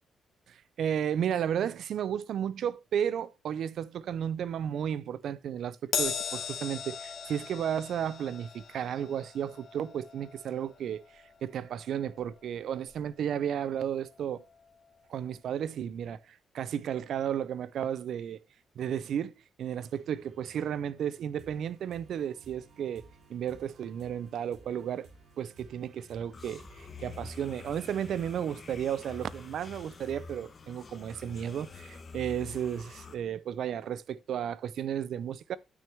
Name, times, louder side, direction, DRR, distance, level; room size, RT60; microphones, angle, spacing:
voice 1, 0.5-14.4 15.1-18.4 18.8-19.3 19.6-25.1 25.4-35.6, right 9 dB, 70° right, 0.5 m, -33 dB
Crash cymbal, 5.9-12.6 12.9-13.1 14.2-14.3, left 7 dB, 65° left, 1.4 m, -38 dB
sound 1, 19.8-30.2, right 3 dB, 85° right, 3.2 m, -57 dB
sound 2, 26.3-33.1, left 4 dB, 35° left, 1.0 m, -47 dB
8.9 x 6.1 x 3.4 m
cardioid pair, 130°, 0 cm